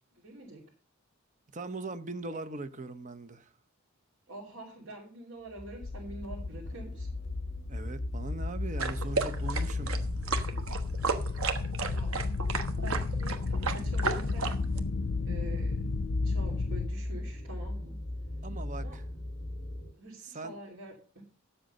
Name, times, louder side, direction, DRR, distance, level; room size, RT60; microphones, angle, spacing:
voice 1, 0.1-0.6 4.3-7.1 11.9-12.3 12.7-14.5 15.3-15.8 16.2-18.0 18.7-19.0 20.0-21.2, right 1 dB, 65° right, 3.0 m, -46 dB
voice 2, 1.5-3.5 7.7-9.9 18.4-19.0 20.2-20.5, right 2 dB, 35° right, 0.8 m, -40 dB
sound 1, 5.5-19.9, left 1 dB, 35° left, 2.0 m, -38 dB
sound 2, 5.8-16.9, left 4 dB, 80° left, 0.6 m, -34 dB
sound 3, 8.8-14.8, right 4 dB, 90° right, 1.3 m, -33 dB
11.5 x 7.8 x 5.5 m
head